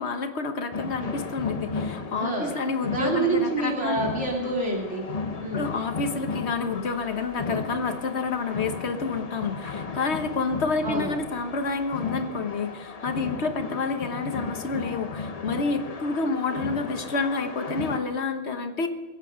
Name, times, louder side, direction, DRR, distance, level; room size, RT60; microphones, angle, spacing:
voice 1, 0.0-4.0 5.5-18.9, left 4 dB, 60° left, 7 dB, 1.4 m, -29 dB
sound 1, 0.7-18.0, left 4 dB, 35° left, 0.9 m, -35 dB
voice 2, 2.1-2.6 2.8-5.0 5.4-5.7 10.8-11.2, right 3 dB, 70° right, -2 dB, 2.9 m, -27 dB
22.0 x 8.3 x 5.1 m, 1.3 s
omnidirectional pair, 1.3 m